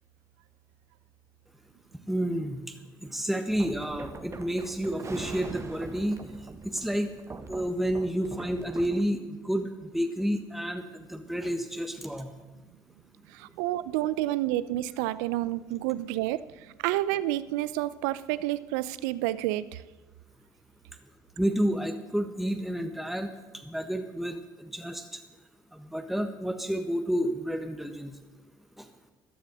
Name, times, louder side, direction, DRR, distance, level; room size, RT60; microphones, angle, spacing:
voice 1, 2.1-2.6 3.0-6.2 6.6-7.1 7.5-12.3 21.4-23.3 23.6-25.2 25.7-28.1 28.8-28.9, equal, ahead, 6 dB, 1.5 m, -30 dB
sound 1, 3.5-9.0, right 4 dB, 30° right, 1.5 m, -42 dB
voice 2, 13.3-19.8, right 15 dB, 75° right, 17 dB, 0.6 m, -29 dB
14.5 x 12.5 x 6.4 m, 1.2 s
hypercardioid pair, 50°, 10 cm